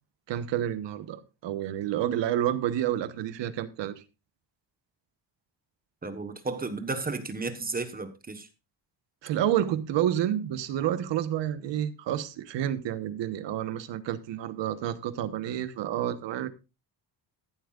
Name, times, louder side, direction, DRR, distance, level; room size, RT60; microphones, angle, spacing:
voice 1, 0.3-3.9 9.2-16.5, right 11 dB, 90° right, 1.2 m, -29 dB
voice 2, 6.0-8.5, right 3 dB, 20° right, 1.2 m, -33 dB
13.5 x 11.5 x 2.4 m
cardioid pair, 150°, 42 cm